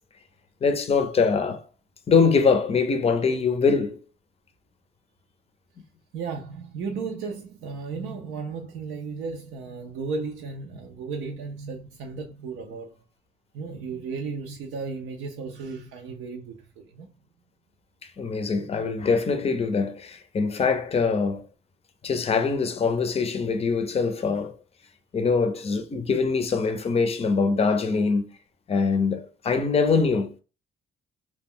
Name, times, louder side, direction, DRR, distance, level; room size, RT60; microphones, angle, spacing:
voice 1, 0.6-1.6 2.1-4.0 18.2-21.4 22.0-24.5 25.1-28.3 28.7-30.4, left 5 dB, 30° left, 0.5 m, -23 dB
voice 2, 6.1-12.9 13.5-17.1, right 4 dB, 85° right, 0.5 m, -34 dB
2.2 x 2.1 x 3.6 m
cardioid pair, 90°, 20 cm